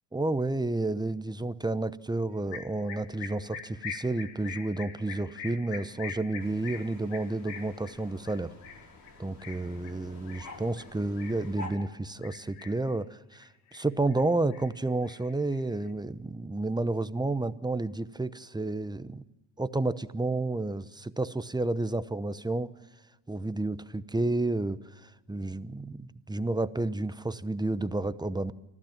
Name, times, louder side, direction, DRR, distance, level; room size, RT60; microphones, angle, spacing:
voice 1, 0.1-8.5 9.2-19.2 19.6-22.7 23.3-28.5, right 2 dB, 10° right, 14 dB, 0.9 m, -31 dB
sound 1, 2.5-11.9 12.2-12.9 13.3-14.2 14.5-15.9, left 7 dB, 90° left, 2.1 m, -44 dB
sound 2, 6.4-11.7, left 2 dB, 40° left, 6.3 m, -48 dB
25.5 x 15.0 x 7.3 m, 1.1 s
supercardioid pair, 75°, 49 cm